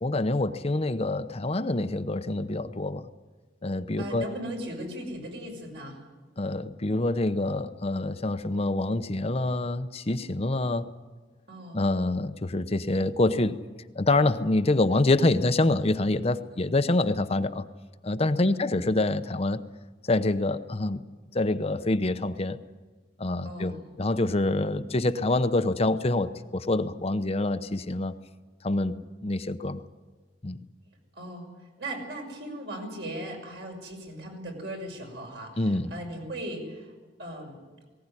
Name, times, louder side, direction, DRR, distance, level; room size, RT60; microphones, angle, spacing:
voice 1, 0.0-3.1 3.6-4.2 6.4-10.9 11.7-13.6 13.9-17.7 18.0-19.6 20.0-21.0 21.3-22.6 23.2-28.1 28.6-29.8 30.4-30.6 35.6-35.9, left 2 dB, 35° left, 10 dB, 0.8 m, -26 dB
voice 2, 4.0-6.0 11.5-11.8 18.4-18.8 23.4-23.9 31.1-31.5 31.8-36.9 37.2-37.6, right 1 dB, 70° right, 2 dB, 6.2 m, -38 dB
19.0 x 18.5 x 9.9 m, 1.4 s
head